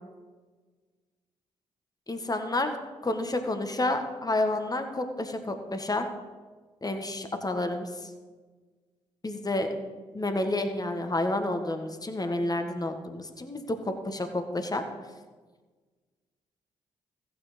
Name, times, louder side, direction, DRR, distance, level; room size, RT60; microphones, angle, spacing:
voice 1, 2.1-6.1 6.8-7.9 9.2-9.7 10.1-14.8, left 2 dB, 25° left, 6 dB, 1.7 m, -30 dB
15.0 x 9.3 x 5.3 m, 1.4 s
hypercardioid pair, 40°, 15 cm